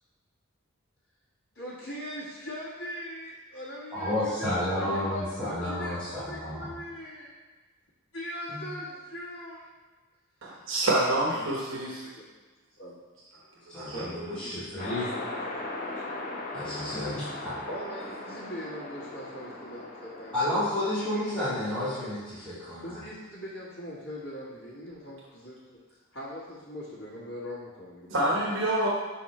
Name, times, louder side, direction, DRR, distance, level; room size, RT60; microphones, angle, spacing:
voice 1, 1.5-7.3 8.1-9.7 11.2-12.2 12.8-12.9 13.8-14.6 16.8-17.2 17.7-20.7 22.8-25.8 26.1-28.9, equal, 80° left, -11 dB, 1.6 m, -41 dB
voice 2, 3.9-6.6 8.5-8.6 13.7-15.1 16.5-17.6 20.3-23.0, left 1 dB, 5° left, -14 dB, 1.9 m, -31 dB
voice 3, 10.4-12.0 13.7-14.0 28.1-28.9, right 1 dB, 65° right, -4 dB, 1.1 m, -27 dB
sound 1, 14.8-22.1, left 2 dB, 40° left, 0.9 m, -39 dB
6.4 x 4.3 x 4.2 m, 1.3 s
head